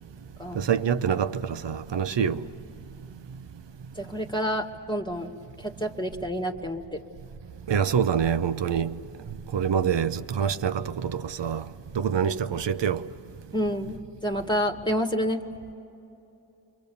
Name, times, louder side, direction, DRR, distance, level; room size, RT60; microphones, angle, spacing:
voice 1, 0.5-2.4 7.7-8.9 9.5-11.6 12.0-13.0, right 7 dB, 60° right, 1.0 m, -25 dB
voice 2, 4.0-5.3 5.6-7.0 13.5-14.0 14.2-15.4, equal, 10° left, 1.9 m, -28 dB
29.5 x 23.5 x 7.0 m
cardioid pair, 40°, 49 cm